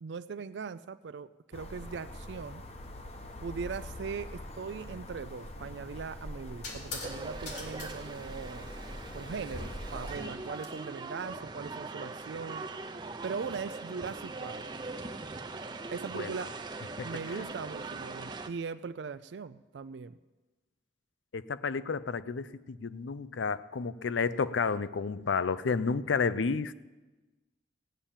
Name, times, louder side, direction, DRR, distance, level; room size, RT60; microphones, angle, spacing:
voice 1, 0.0-2.6 3.4-8.7 9.1-12.7 13.2-14.7 15.9-16.5 17.0-20.2, right 5 dB, 70° right, 12 dB, 0.4 m, -40 dB
sound 1, 1.5-10.2, left 1 dB, 35° left, 1.0 m, -44 dB
sound 2, 5.4-5.6 6.6-7.2 7.5-7.9 10.1-10.7, left 3 dB, 65° left, 3.0 m, -42 dB
sound 3, 7.0-18.5, right 3 dB, 25° right, 0.6 m, -41 dB
voice 2, 17.0-17.4 21.3-26.7, left 5 dB, 85° left, 16 dB, 0.5 m, -31 dB
16.0 x 10.0 x 7.2 m, 1.2 s
head